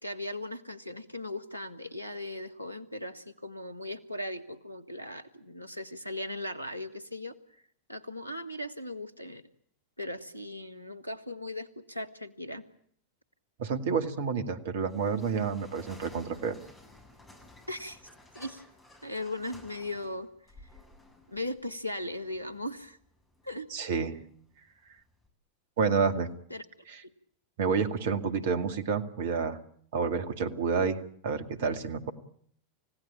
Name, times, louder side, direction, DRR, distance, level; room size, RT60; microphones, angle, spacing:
voice 1, 0.0-7.4 7.9-9.4 10.0-12.6 17.7-18.0 18.3-18.6 19.0-20.3 21.3-23.0 23.4-23.7 26.5-26.6, left 1 dB, 85° left, 15 dB, 1.6 m, -38 dB
voice 2, 13.6-16.5 23.7-24.1 25.8-26.3 26.9-27.0 27.6-29.6 29.9-32.1, right 5 dB, 55° right, 10 dB, 2.2 m, -29 dB
sound 1, 14.8-25.3, left 1 dB, 15° left, 7.4 m, -55 dB
29.0 x 17.0 x 8.9 m, 0.64 s
figure-of-eight pair, 90°, 0 cm